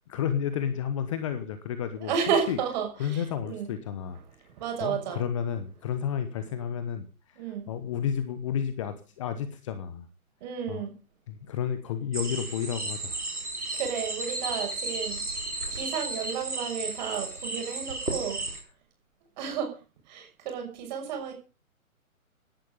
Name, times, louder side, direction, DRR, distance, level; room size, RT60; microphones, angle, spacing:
voice 1, 0.1-2.1 2.5-2.6 3.0-4.2 4.8-10.1 10.7-10.9 11.3-13.2, left 8 dB, 20° left, 11 dB, 1.0 m, -31 dB
voice 2, 2.0-3.7 4.6-5.2 7.4-7.7 10.4-10.9 13.7-18.4 19.4-19.7 20.1-21.3, right 7 dB, 30° right, 3 dB, 6.4 m, -32 dB
sound 1, 12.1-18.6, right 2 dB, 85° right, 4.8 m, -34 dB
17.0 x 11.0 x 5.3 m, 0.34 s
figure-of-eight pair, 140°, 43 cm